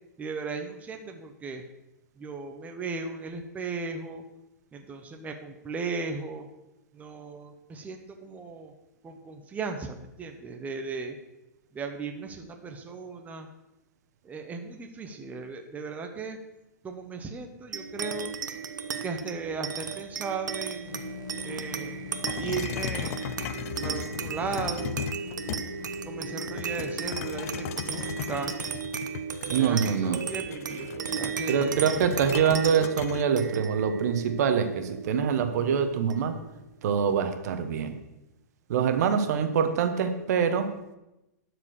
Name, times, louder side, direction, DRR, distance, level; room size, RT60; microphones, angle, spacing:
voice 1, 0.2-1.6 2.2-4.2 4.7-6.5 6.9-8.7 9.0-11.2 11.7-13.5 14.2-16.4 16.8-18.3 19.0-21.0 21.4-23.2 23.8-25.1 26.1-28.5 29.5-31.8, right 4 dB, 15° right, 4 dB, 1.0 m, -36 dB
sound 1, 17.7-36.6, right 6 dB, 90° right, 0.9 m, -35 dB
sound 2, 20.8-28.5, left 7 dB, 75° left, 1.6 m, -44 dB
sound 3, 22.2-25.9 26.6-33.2, left 11 dB, 55° left, 0.5 m, -37 dB
voice 2, 29.5-30.2 31.5-36.3 36.8-38.0 38.7-40.7, right 7 dB, 65° right, 8 dB, 1.3 m, -25 dB
12.0 x 5.0 x 6.5 m, 0.93 s
hypercardioid pair, 130°, 10 cm